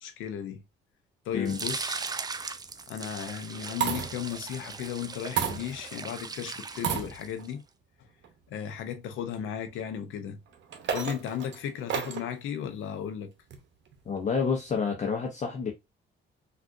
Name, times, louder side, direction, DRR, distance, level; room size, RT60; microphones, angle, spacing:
voice 1, 0.0-0.6 1.3-2.0 2.9-7.6 8.5-10.4 10.9-13.3, left 9 dB, 90° left, 0.6 m, -35 dB
sound 1, 1.5-7.5, right 4 dB, 20° right, 0.3 m, -38 dB
sound 2, 2.1-2.5 3.5-4.4 5.4-6.1 6.7-7.5 8.2-8.3 10.5-12.3 13.5-14.0, right 8 dB, 65° right, 0.8 m, -33 dB
voice 2, 14.1-15.7, left 5 dB, 35° left, 0.8 m, -29 dB
3.5 x 2.5 x 2.4 m
cardioid pair, 90°, 20 cm